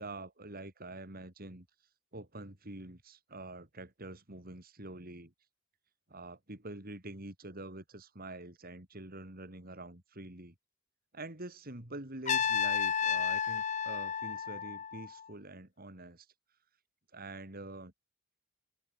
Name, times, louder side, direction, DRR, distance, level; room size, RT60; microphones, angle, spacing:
voice 1, 0.0-1.7 2.1-5.3 6.1-10.5 11.1-16.3 17.1-17.9, right 2 dB, 45° right, 4.1 m, -46 dB
Trumpet, 12.3-15.2, left 7 dB, 35° left, 0.6 m, -32 dB
head